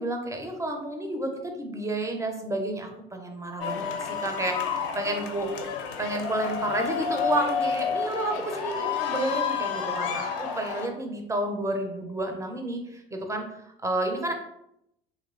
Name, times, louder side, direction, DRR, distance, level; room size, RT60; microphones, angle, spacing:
voice 1, 0.0-5.5 6.0-14.3, right 1 dB, 10° right, 3 dB, 0.4 m, -31 dB
sound 1, 3.6-10.9, left 6 dB, 65° left, 0.5 m, -30 dB
2.8 x 2.0 x 2.4 m, 0.79 s
figure-of-eight pair, 55°, 29 cm